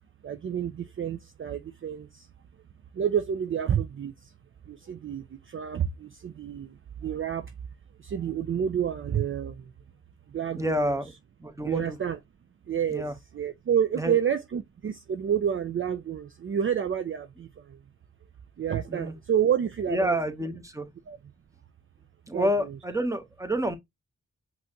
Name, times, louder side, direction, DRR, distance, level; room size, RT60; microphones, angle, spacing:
voice 1, 0.2-2.3 2.9-4.1 4.7-6.7 7.0-7.5 8.0-9.6 10.3-11.0 11.7-12.2 12.7-13.0 13.3-17.8 18.6-20.2 21.1-21.2 22.3-22.8, right 8 dB, 45° right, 0.4 m, -29 dB
voice 2, 10.5-11.1 11.4-12.0 12.9-13.1 14.0-14.2 18.9-19.1 19.9-20.9 22.3-23.8, equal, 10° right, 0.9 m, -28 dB
5.4 x 2.7 x 2.9 m
cardioid pair, 60°, 30 cm